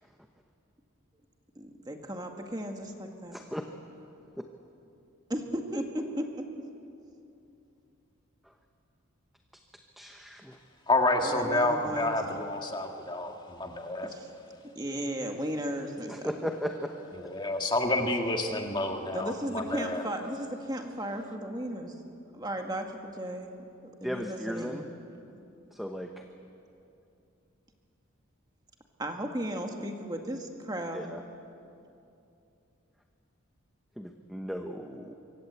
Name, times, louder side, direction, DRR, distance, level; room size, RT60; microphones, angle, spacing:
voice 1, 1.6-3.4 5.3-6.5 11.2-12.5 14.0-14.3 14.8-16.3 19.1-22.0 22.3-23.5 23.8-24.8 29.0-31.1, right 1 dB, 20° right, 3 dB, 1.9 m, -35 dB
voice 2, 3.3-3.7 4.4-4.5 10.0-10.6 16.1-16.9 24.0-24.8 25.7-26.2 30.9-31.2 34.0-35.1, equal, ahead, 3 dB, 1.0 m, -36 dB
voice 3, 10.9-14.1 17.2-20.0, left 2 dB, 20° left, 3 dB, 1.9 m, -29 dB
25.5 x 24.0 x 8.3 m, 2.7 s
head